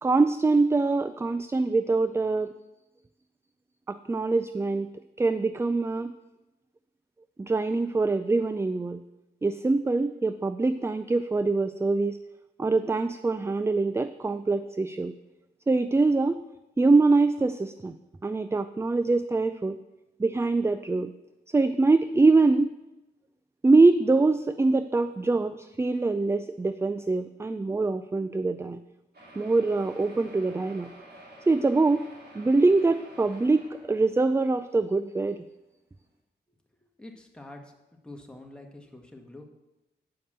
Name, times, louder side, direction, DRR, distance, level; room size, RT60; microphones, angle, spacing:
voice 1, 0.0-2.5 3.9-4.9 5.2-6.1 7.4-9.0 9.4-12.2 12.6-15.1 15.7-16.4 16.8-18.0 18.2-19.8 20.2-21.1 21.5-22.7 23.6-28.8 29.4-30.9 31.5-32.0 32.3-35.4, right 3 dB, 15° right, 12 dB, 0.3 m, -24 dB
sound 1, 29.1-34.6 35.3-35.4 35.6-35.7 36.1-36.2, right 1 dB, 60° right, 2.7 m, -50 dB
voice 2, 37.0-39.5, left 2 dB, 5° left, 1 dB, 1.5 m, -46 dB
7.7 x 5.2 x 6.6 m, 0.98 s
cardioid pair, 60°, 18 cm